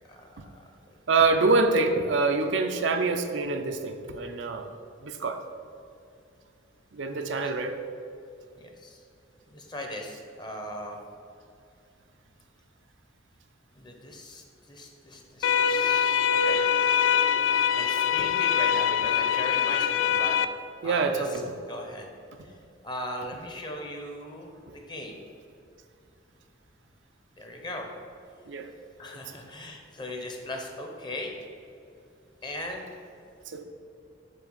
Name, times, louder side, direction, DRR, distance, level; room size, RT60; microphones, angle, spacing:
voice 1, 1.1-4.7 5.0-5.4 6.9-7.8 20.8-21.5 24.7-24.8 28.5-28.7 29.1-29.2 33.5-33.6, right 3 dB, 70° right, 6 dB, 0.6 m, -25 dB
voice 2, 8.5-9.0 9.5-11.0 13.8-16.6 17.7-20.4 20.8-21.4 21.7-22.1 22.4-22.5 22.8-25.2 27.4-27.9 29.0-31.3 32.4-32.9, left 1 dB, 25° left, 2 dB, 0.9 m, -38 dB
sound 1, 15.4-20.4, left 8 dB, 85° left, 0.3 m, -23 dB
7.5 x 3.4 x 6.3 m, 2.5 s
head